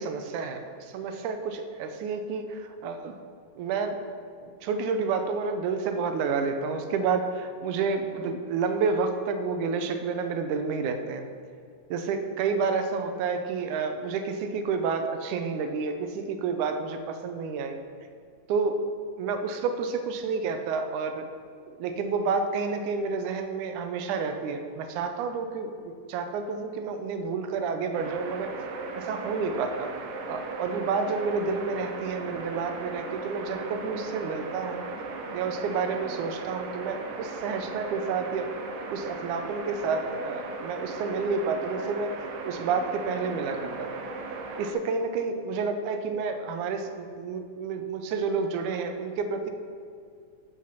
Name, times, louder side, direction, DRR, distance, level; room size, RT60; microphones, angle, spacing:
voice 1, 0.0-3.2 3.6-4.0 4.4-11.3 11.9-17.8 18.5-18.8 19.2-21.3 21.7-28.5 28.9-30.0 30.3-34.9 35.3-38.5 38.9-42.1 42.4-43.9 44.6-49.5, right 5 dB, 90° right, 7 dB, 2.2 m, -30 dB
sound 1, 27.9-44.7, right 3 dB, 70° right, 1.2 m, -37 dB
12.5 x 5.8 x 5.6 m, 2.4 s
omnidirectional pair, 3.5 m